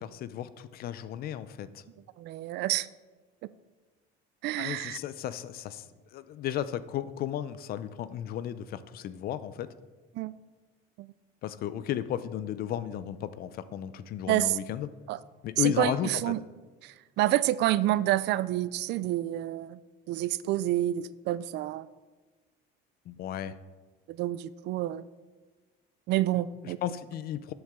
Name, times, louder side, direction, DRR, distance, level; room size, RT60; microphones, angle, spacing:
voice 1, 0.0-1.8 4.6-5.9 6.1-9.7 11.4-14.9 15.4-16.3 23.1-23.5 26.6-27.5, left 10 dB, 50° left, 14 dB, 0.5 m, -34 dB
voice 2, 2.2-2.9 4.4-5.0 10.1-10.3 11.0-11.1 14.3-14.6 15.1-15.2 15.6-16.4 16.8-19.8 20.1-21.9 24.1-25.1 26.1-26.8, right 14 dB, 60° right, 17 dB, 0.4 m, -28 dB
12.0 x 7.9 x 3.6 m, 1.3 s
cardioid pair, 145°, 20 cm